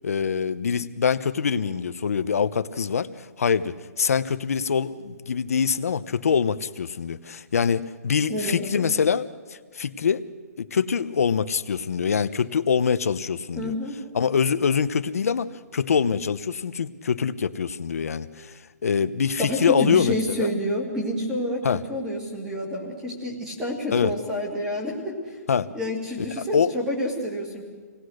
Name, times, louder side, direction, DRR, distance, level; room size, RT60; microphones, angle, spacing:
voice 1, 0.0-10.2 10.6-13.7 14.1-20.5 21.6-21.8 23.9-24.1 25.5-25.7 26.4-26.7, left 6 dB, 55° left, 12 dB, 0.9 m, -24 dB
voice 2, 8.3-8.9 13.6-14.0 19.4-25.4 25.7-27.6, equal, 5° right, -1 dB, 2.2 m, -29 dB
26.5 x 18.0 x 6.5 m, 1.4 s
hypercardioid pair, 180°, 9 cm